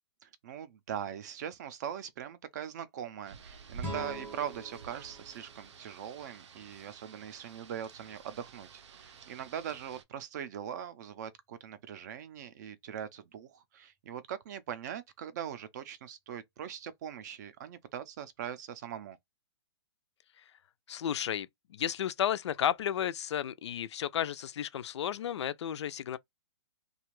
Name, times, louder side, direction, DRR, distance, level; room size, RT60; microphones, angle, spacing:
voice 1, 0.2-19.2, right 9 dB, 40° right, 0.4 m, -41 dB
Rain, 3.3-10.0, right 6 dB, 85° right, 0.6 m, -51 dB
sound 1, 3.8-6.8, right 1 dB, 10° right, 0.7 m, -44 dB
voice 2, 20.9-26.2, left 10 dB, 80° left, 0.4 m, -33 dB
2.5 x 2.3 x 3.0 m
hypercardioid pair, 160°, 14 cm